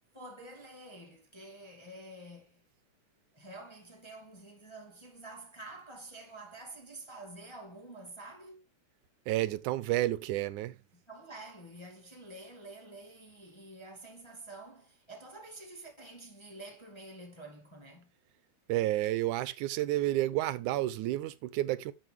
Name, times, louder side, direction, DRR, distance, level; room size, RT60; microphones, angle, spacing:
voice 1, 0.1-2.6 3.3-8.6 10.9-18.1, right 2 dB, 10° left, 1.6 m, -48 dB
voice 2, 9.3-10.8 18.7-21.9, right 15 dB, 90° right, 2.2 m, -30 dB
10.0 x 7.4 x 3.3 m
omnidirectional pair, 3.4 m